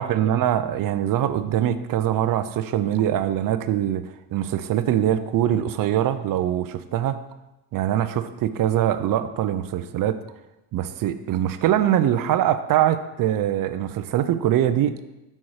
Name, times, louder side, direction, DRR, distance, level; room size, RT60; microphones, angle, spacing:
voice 1, 0.0-7.2 7.7-10.2 10.7-15.1, right 11 dB, 45° right, 12 dB, 0.5 m, -23 dB
6.1 x 4.3 x 4.6 m, 0.99 s
cardioid pair, 105°, 48 cm